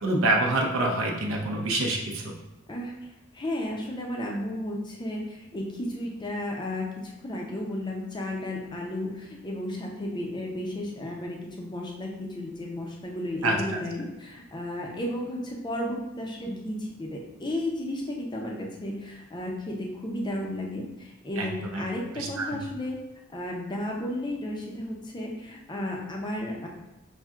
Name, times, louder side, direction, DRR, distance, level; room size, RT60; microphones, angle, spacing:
voice 1, 0.0-2.2 13.4-13.6 21.4-21.5 21.7-21.8 22.2-22.3, right 2 dB, 70° right, 0 dB, 0.6 m, -25 dB
voice 2, 2.7-23.0 23.3-26.7, left 1 dB, 20° left, -1 dB, 0.5 m, -33 dB
5.6 x 2.6 x 2.4 m, 0.96 s
head